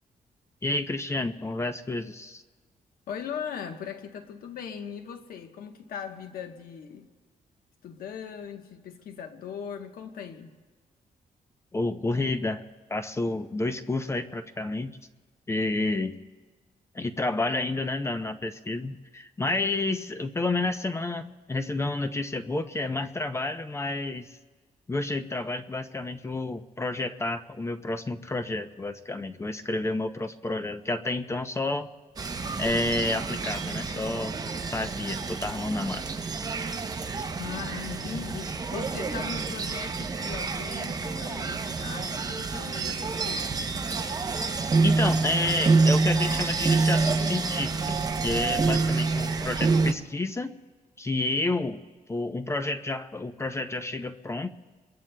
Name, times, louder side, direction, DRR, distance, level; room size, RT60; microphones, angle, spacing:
voice 1, 0.6-2.4 11.7-12.6 12.9-14.9 15.5-16.2 16.9-24.4 24.9-31.9 32.6-34.4 34.7-36.2 37.2-37.3 44.8-50.5 51.0-51.8 52.1-54.5, left 2 dB, 20° left, 0.5 m, -30 dB
voice 2, 3.1-7.1 7.8-10.5 37.4-43.6, left 7 dB, 80° left, 1.1 m, -39 dB
sound 1, 32.2-49.9, right 4 dB, 25° right, 0.7 m, -27 dB
27.5 x 22.0 x 2.2 m
cardioid pair, 140°, 15 cm